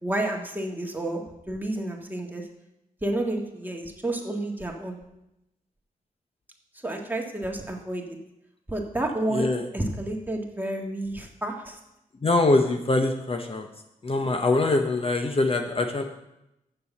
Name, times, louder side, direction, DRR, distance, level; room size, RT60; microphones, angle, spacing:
voice 1, 0.0-2.4 3.0-5.0 6.8-8.0 8.7-9.5 9.7-11.8, right 1 dB, 10° right, 1 dB, 1.7 m, -30 dB
voice 2, 9.3-9.6 12.2-13.7 14.0-16.0, left 2 dB, 40° left, 4 dB, 0.9 m, -23 dB
6.9 x 6.9 x 7.2 m, 0.87 s
cardioid pair, 75°, 15 cm